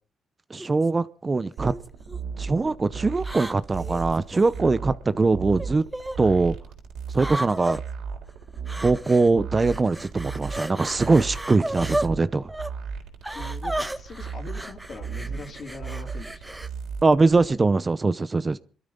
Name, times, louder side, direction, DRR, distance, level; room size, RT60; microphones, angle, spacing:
voice 1, 0.5-1.7 2.4-5.9 6.2-6.6 7.1-7.8 8.8-12.5 17.0-18.6, right 3 dB, 25° right, 0.7 m, -22 dB
sound 1, 0.6-0.9 1.6-2.2 3.2-4.6 5.6-6.2 7.1-7.8 8.7-9.3 9.6-12.1 12.5-12.7 13.2-16.7, right 1 dB, 10° right, 1.1 m, -33 dB
sound 2, 1.6-17.5, right 5 dB, 80° right, 3.8 m, -36 dB
voice 2, 13.3-16.6, left 3 dB, 50° left, 3.2 m, -41 dB
22.5 x 13.0 x 4.0 m
cardioid pair, 90°, 0 cm